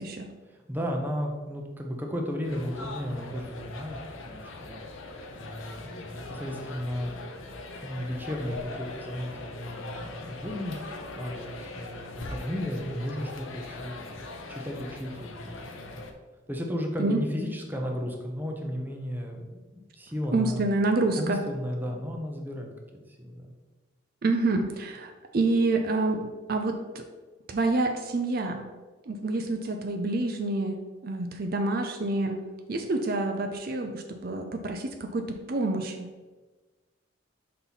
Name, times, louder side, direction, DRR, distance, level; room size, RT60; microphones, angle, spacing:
voice 1, 0.4-7.1 7.8-16.0 16.5-20.7 21.1-22.7 23.1-23.5, equal, 10° right, 1 dB, 0.6 m, -34 dB
sound 1, 2.4-16.1, left 3 dB, 85° left, 0.7 m, -41 dB
voice 2, 20.3-21.4 24.2-26.2 26.5-27.0 27.5-28.6 29.1-30.8 31.0-32.4 32.7-36.0, right 2 dB, 50° right, 4 dB, 0.5 m, -27 dB
5.6 x 4.3 x 4.0 m, 1.3 s
head